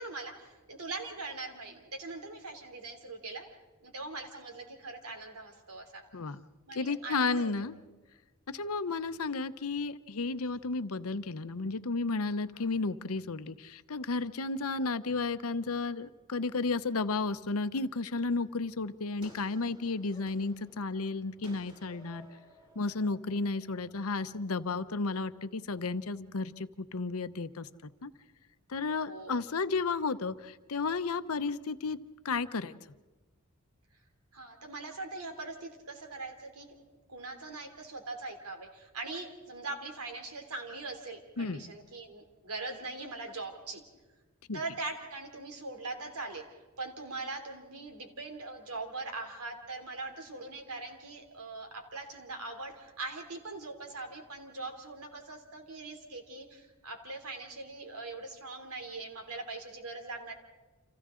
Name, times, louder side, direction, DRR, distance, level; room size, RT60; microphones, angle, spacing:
voice 1, 0.0-3.4 3.8-6.0 6.7-7.5 29.1-29.4 34.3-36.7 37.1-43.8 44.5-46.4 46.8-60.3, right 3 dB, 85° right, 5 dB, 3.0 m, -41 dB
voice 2, 6.1-6.4 6.7-7.8 8.5-22.3 22.8-27.7 28.0-28.1 28.7-32.0 32.2-32.7 41.4-41.6 44.5-44.6, left 3 dB, 75° left, 12 dB, 0.8 m, -33 dB
sound 1, 18.3-24.5, equal, 20° right, 4.3 m, -58 dB
30.0 x 27.0 x 3.8 m, 1.3 s
head